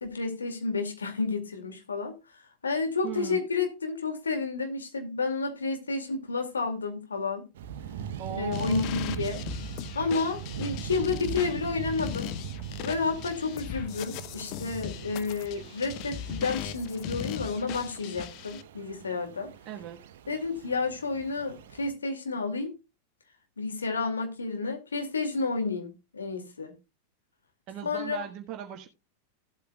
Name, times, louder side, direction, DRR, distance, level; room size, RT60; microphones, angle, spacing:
voice 1, 0.0-2.2 2.6-7.5 8.3-9.4 9.9-12.3 12.8-19.5 20.3-22.7 23.6-26.7 27.8-28.2, left 4 dB, 80° left, 2.3 m, -31 dB
voice 2, 3.0-3.4 8.2-8.9 19.6-20.0 27.7-28.9, right 10 dB, 45° right, 1.3 m, -38 dB
sound 1, 7.5-21.9, right 8 dB, 65° right, 1.0 m, -41 dB
sound 2, 8.5-18.6, left 11 dB, 45° left, 0.9 m, -38 dB
16.5 x 8.3 x 2.3 m
figure-of-eight pair, 90°, 0 cm